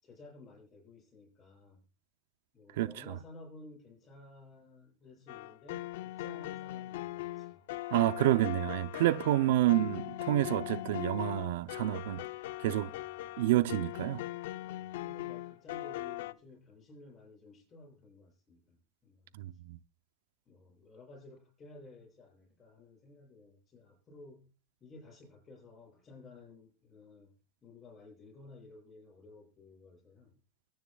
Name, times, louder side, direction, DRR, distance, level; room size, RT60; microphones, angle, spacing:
voice 1, 0.0-1.8 2.5-7.7 9.1-9.8 12.0-12.3 12.8-13.1 14.6-19.4 20.5-24.5 24.8-27.3 27.6-30.4, left 2 dB, 20° left, 7.5 m, -55 dB
sound 1, 5.3-16.3, left 16 dB, 75° left, 0.6 m, -40 dB
voice 2, 7.9-12.2 12.6-12.9 13.4-14.2 19.4-19.8, right 14 dB, 75° right, 0.5 m, -28 dB
23.0 x 10.5 x 2.3 m
supercardioid pair, 150°, 0 cm